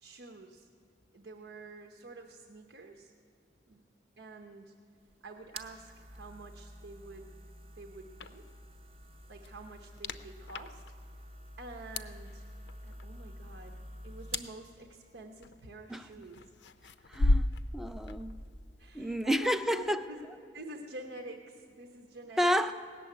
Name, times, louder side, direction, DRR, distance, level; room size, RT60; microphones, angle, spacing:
voice 1, 0.0-0.7 1.1-3.1 3.7-3.8 4.2-4.7 5.2-7.3 7.7-8.4 9.3-10.8 11.6-12.5 12.8-16.5 17.0-17.2 18.8-20.3 20.5-22.5, right 2 dB, 80° right, 3 dB, 0.9 m, -48 dB
sound 1, 5.0-14.6, right 1 dB, 35° right, 0.7 m, -48 dB
sound 2, 8.2-19.3, left 2 dB, 80° left, 0.5 m, -37 dB
voice 2, 17.1-17.5 17.7-18.4 18.9-20.0 22.4-22.7, equal, ahead, 10 dB, 0.4 m, -30 dB
17.5 x 7.0 x 9.5 m, 2.6 s
head